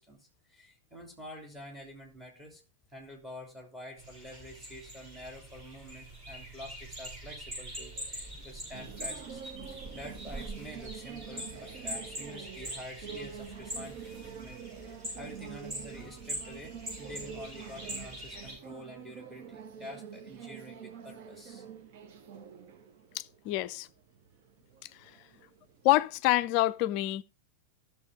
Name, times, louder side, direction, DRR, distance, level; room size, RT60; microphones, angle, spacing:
voice 1, 0.0-2.6 2.9-9.4 9.9-21.6, left 1 dB, 10° right, 3.3 m, -48 dB
sound 1, 4.0-18.5, right 1 dB, 35° right, 7.0 m, -43 dB
sound 2, 7.8-26.2, right 7 dB, 50° right, 1.3 m, -47 dB
voice 2, 23.1-23.9 25.0-25.1 25.8-27.2, left 16 dB, 45° left, 0.4 m, -27 dB
15.0 x 6.6 x 3.5 m
figure-of-eight pair, 90°, 0 cm